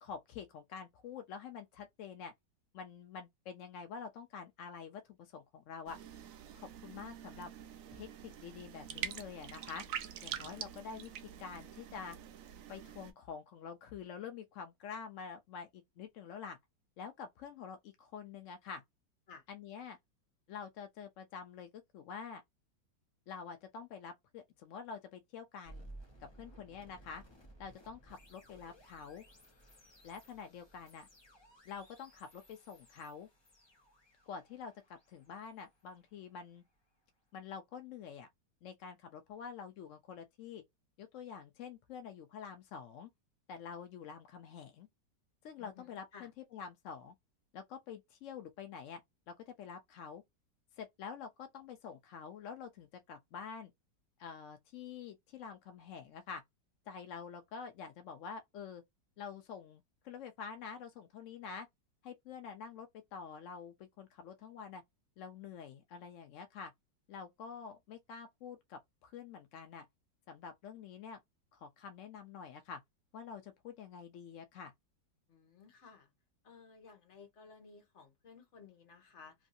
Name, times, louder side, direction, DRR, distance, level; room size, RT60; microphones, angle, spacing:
voice 1, 0.0-2.3 2.7-6.0 6.5-7.5 7.9-9.8 10.2-11.1 11.4-12.2 12.7-16.6 17.0-18.8 19.5-20.0 20.5-22.4 23.3-25.9 26.2-27.2 27.6-29.2 30.0-31.1 31.7-33.3 34.3-36.6 37.3-38.3 38.6-40.6 41.0-43.1 43.5-44.9 45.4-47.1 47.5-49.0 49.3-50.2 50.8-53.7 54.2-56.4 56.9-58.8 59.2-61.7 62.0-64.8 65.2-66.7 67.1-69.9 70.3-71.2 71.5-72.8 73.1-74.7, left 6 dB, 75° left, 0.7 m, -47 dB
sound 1, 5.9-13.1, right 9 dB, 70° right, 0.8 m, -46 dB
sound 2, 25.7-36.7, right 1 dB, 30° left, 0.5 m, -58 dB
voice 2, 45.6-46.3 75.3-76.1 76.4-79.3, left 5 dB, 45° left, 1.2 m, -56 dB
3.1 x 2.6 x 2.5 m
omnidirectional pair, 1.9 m